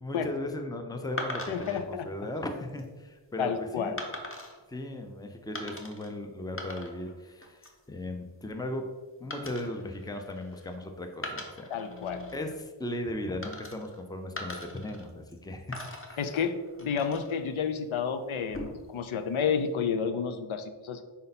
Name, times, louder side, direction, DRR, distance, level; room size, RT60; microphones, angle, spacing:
voice 1, 0.0-3.9 4.7-8.9 9.2-11.7 12.3-15.8 16.1-16.3, left 1 dB, 10° left, 5 dB, 0.5 m, -37 dB
sound 1, 1.2-1.8 2.5-2.8 4.0-4.6 5.5-6.1 6.4-7.1 7.4-7.8 9.3-10.8 11.1-12.4 13.4-14.0 14.4-15.4 15.7-17.4 18.3-19.0, left 1 dB, 25° left, 0.9 m, -41 dB
voice 2, 1.5-2.1 3.4-4.0 11.7-12.3 16.2-21.0, left 6 dB, 85° left, 8 dB, 0.6 m, -30 dB
5.5 x 4.3 x 4.1 m, 1.3 s
wide cardioid pair, 105°, 47 cm